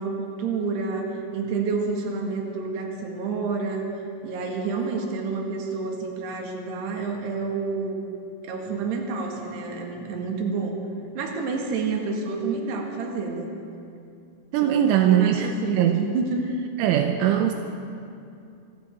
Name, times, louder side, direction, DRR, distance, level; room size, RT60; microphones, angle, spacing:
voice 1, 0.0-3.9 4.2-8.0 8.4-10.8 11.2-13.5 14.6-16.5, right 4 dB, 65° right, 1 dB, 3.6 m, -29 dB
voice 2, 14.5-16.0 16.8-17.5, right 10 dB, 85° right, 5 dB, 3.1 m, -21 dB
25.5 x 15.5 x 3.6 m, 2.6 s
omnidirectional pair, 5.7 m